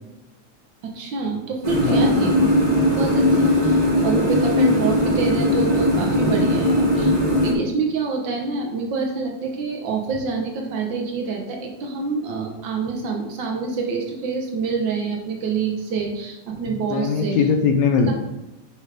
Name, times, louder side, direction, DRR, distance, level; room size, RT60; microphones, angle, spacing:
voice 1, 0.8-17.5 18.1-18.2, right 4 dB, 85° right, 1 dB, 1.0 m, -27 dB
sound 1, 1.6-7.5, left 1 dB, 45° right, 0.5 m, -19 dB
voice 2, 16.7-18.1, left 5 dB, 75° left, 4 dB, 1.9 m, -20 dB
10.5 x 5.0 x 3.3 m, 0.95 s
omnidirectional pair, 3.4 m